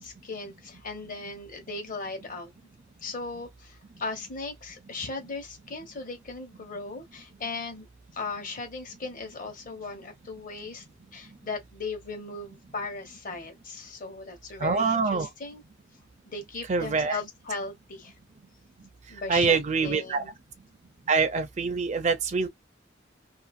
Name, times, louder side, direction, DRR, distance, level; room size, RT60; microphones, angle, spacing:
voice 1, 0.0-2.5 3.0-7.9 8.1-10.8 11.1-15.6 16.3-18.1 19.1-20.3, left 3 dB, 45° left, 1.1 m, -37 dB
voice 2, 14.6-15.3 16.7-17.2 19.3-20.2 21.1-22.5, right 4 dB, 40° right, 0.5 m, -25 dB
2.6 x 2.5 x 2.4 m
head